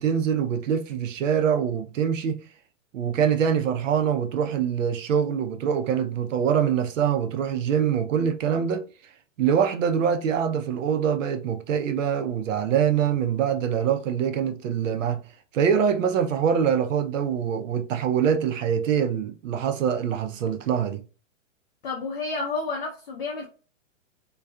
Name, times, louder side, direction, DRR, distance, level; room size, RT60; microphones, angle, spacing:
voice 1, 0.0-2.4 2.9-8.8 9.4-15.2 15.5-21.0, right 8 dB, 75° right, 0.6 m, -24 dB
voice 2, 21.8-23.5, left 3 dB, 45° left, 0.5 m, -30 dB
2.3 x 2.2 x 2.4 m
hypercardioid pair, 175°, 39 cm